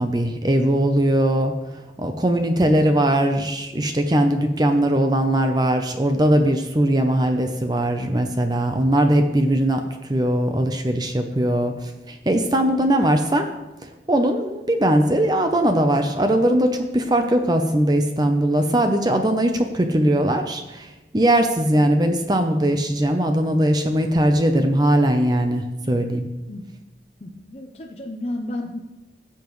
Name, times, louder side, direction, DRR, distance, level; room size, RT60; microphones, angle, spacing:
voice 1, 0.0-1.5 2.0-13.5 13.8-26.3, right 1 dB, 25° right, 6 dB, 0.6 m, -20 dB
voice 2, 27.2-28.8, left 1 dB, 35° left, 1 dB, 0.7 m, -32 dB
16.0 x 6.9 x 3.2 m, 1.1 s
head